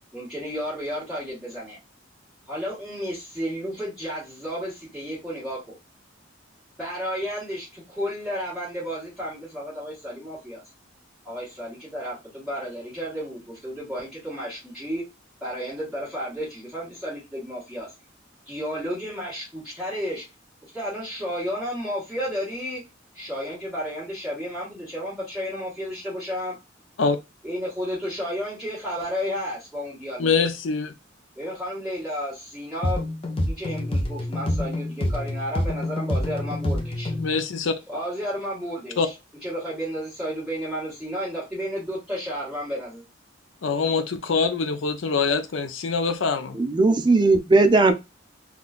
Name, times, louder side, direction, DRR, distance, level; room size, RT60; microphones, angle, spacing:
voice 1, 0.1-1.8 2.5-5.8 6.8-10.6 11.2-15.0 15.4-17.9 18.5-20.2 20.7-22.8 23.1-26.5 27.4-30.3 31.4-33.0 33.4-37.1 37.9-39.1 39.4-43.0, equal, 5° right, 1.7 m, -32 dB
voice 2, 30.2-30.9 37.2-37.7 39.0-39.1 43.6-46.5, left 4 dB, 75° left, 0.5 m, -24 dB
sound 1, 32.8-37.4, left 1 dB, 30° left, 0.6 m, -27 dB
voice 3, 46.6-47.9, right 3 dB, 25° right, 0.4 m, -17 dB
3.6 x 2.4 x 2.4 m
head